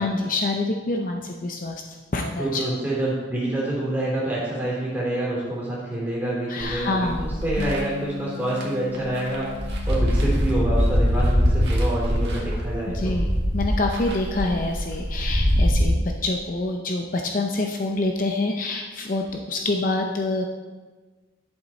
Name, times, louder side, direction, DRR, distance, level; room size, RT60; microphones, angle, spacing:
voice 1, 0.0-1.8 2.1-2.8 6.5-7.2 12.9-20.5, left 2 dB, 45° left, 2 dB, 0.7 m, -26 dB
voice 2, 2.4-9.5 9.9-13.1, right 1 dB, 10° right, -7 dB, 3.2 m, -27 dB
sound 1, 6.6-7.8 8.5-8.6 8.9-15.8, equal, 60° right, 1.9 m, -23 dB
sound 2, 7.6-12.2, left 6 dB, 75° left, 1.2 m, -38 dB
11.0 x 7.2 x 4.3 m, 1.3 s
head